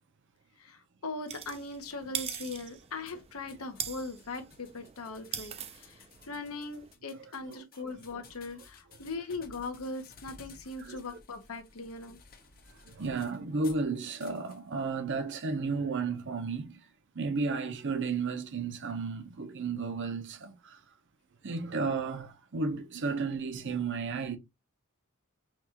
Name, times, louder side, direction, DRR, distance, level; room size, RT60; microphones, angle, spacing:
voice 1, 0.6-12.2, left 3 dB, 75° left, 0.9 m, -40 dB
sound 1, 1.3-6.9, right 8 dB, 30° right, 0.4 m, -42 dB
sound 2, 3.1-13.9 14.2-14.6, left 4 dB, 45° left, 0.8 m, -56 dB
voice 2, 7.5-7.9 10.8-11.2 12.7-16.9 17.1-20.8 21.4-24.4, right 4 dB, 60° right, 0.7 m, -33 dB
5.9 x 2.4 x 2.9 m
head